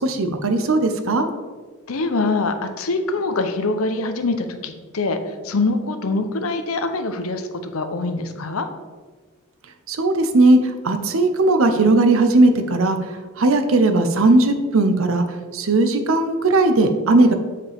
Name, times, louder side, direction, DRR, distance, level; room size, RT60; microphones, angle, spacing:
voice 1, 0.0-1.3 9.9-13.0 13.4-15.2 15.5-17.3, right 2 dB, 70° right, 8 dB, 0.7 m, -17 dB
voice 2, 1.9-8.7, left 3 dB, 80° left, 8 dB, 0.7 m, -24 dB
7.9 x 5.1 x 3.5 m, 1.4 s
head